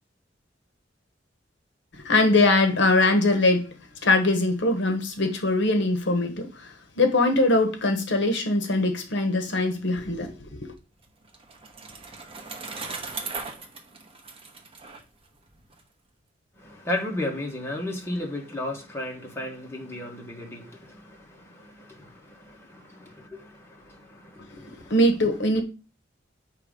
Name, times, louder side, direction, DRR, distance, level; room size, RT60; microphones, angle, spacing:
voice 1, 2.0-3.7 4.0-10.7 24.9-25.6, left 2 dB, 70° left, 0.9 m, -22 dB
Bicycle, 10.7-15.8, right 4 dB, 30° right, 1.0 m, -38 dB
voice 2, 16.6-24.9, left 1 dB, 15° left, 1.3 m, -35 dB
6.7 x 2.9 x 5.1 m
head